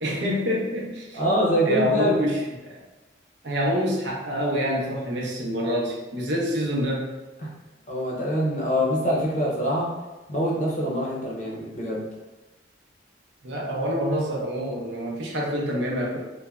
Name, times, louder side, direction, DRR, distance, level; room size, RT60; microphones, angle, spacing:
voice 1, 0.0-1.2 1.6-2.4 3.4-7.1 13.4-16.2, equal, 80° right, -2 dB, 0.6 m, -26 dB
voice 2, 1.1-2.3 7.4-7.5 7.9-9.9 10.3-12.0, equal, 40° left, -3 dB, 0.5 m, -24 dB
3.1 x 2.1 x 2.3 m, 1.1 s
head